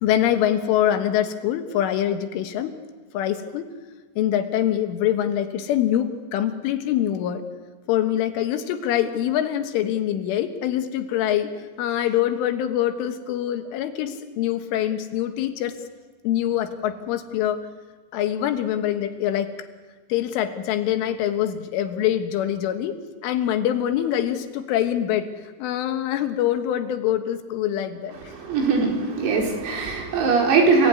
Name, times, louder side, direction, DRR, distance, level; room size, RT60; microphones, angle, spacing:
voice 1, 0.0-2.8 3.1-3.7 4.2-7.4 7.9-15.8 16.2-17.7 18.1-19.5 20.1-23.0 23.2-28.3, left 11 dB, 75° left, 8 dB, 3.7 m, -24 dB
voice 2, 28.3-30.9, right 4 dB, 85° right, 1 dB, 7.3 m, -21 dB
30.0 x 18.0 x 9.7 m, 1.4 s
omnidirectional pair, 5.9 m